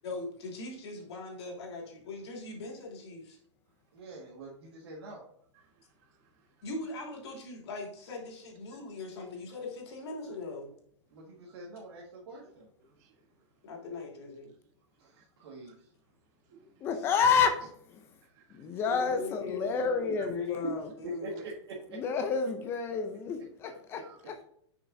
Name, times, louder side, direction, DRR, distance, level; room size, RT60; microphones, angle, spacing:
voice 1, 0.0-3.4 6.6-10.7 13.6-14.5 16.9-17.1 18.9-21.4, left 3 dB, 60° left, 2.8 m, -40 dB
voice 2, 3.9-5.2 11.1-12.7 15.0-15.7 20.6-20.7 21.0-21.8 24.2-24.4, right 1 dB, 60° right, 1.8 m, -43 dB
voice 3, 5.5-6.6 9.2-9.3 11.1-11.6 12.8-13.5 15.1-15.8 16.4-17.0 18.2-18.8 20.2-20.3 23.7-24.2, right 6 dB, 35° right, 1.2 m, -61 dB
voice 4, 16.8-17.6 17.9-18.0 18.5-20.9 21.9-24.4, left 6 dB, 15° left, 0.5 m, -29 dB
6.4 x 5.9 x 2.7 m
hypercardioid pair, 170°, 16 cm